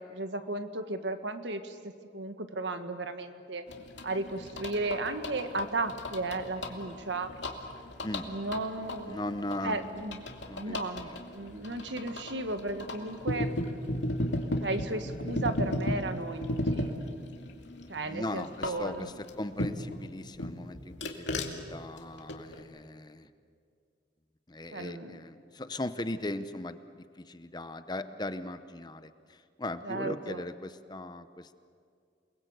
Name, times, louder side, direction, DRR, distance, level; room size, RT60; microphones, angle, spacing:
voice 1, 0.0-3.6 4.0-7.3 8.3-9.2 9.6-13.5 14.6-16.9 17.9-19.1 24.7-25.2 29.8-30.4, right 2 dB, 75° right, 8 dB, 1.7 m, -35 dB
sound 1, 3.7-20.0 20.4-22.6, left 1 dB, 75° left, 2.5 m, -36 dB
voice 2, 9.1-10.0 10.4-11.2 17.9-23.3 24.5-31.5, left 1 dB, 20° left, 11 dB, 0.8 m, -38 dB
29.0 x 21.0 x 8.1 m, 2.3 s
head